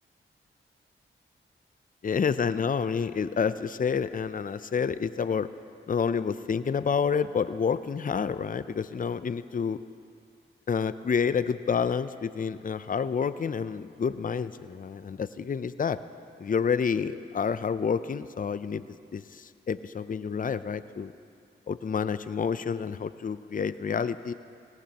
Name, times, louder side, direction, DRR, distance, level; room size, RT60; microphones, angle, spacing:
voice 1, 2.0-5.5 5.9-9.8 10.7-16.0 16.4-18.9 19.1-21.1 21.7-24.3, left 6 dB, 40° left, 14 dB, 0.5 m, -29 dB
21.0 x 18.0 x 3.0 m, 2.3 s
cardioid pair, 45°, 21 cm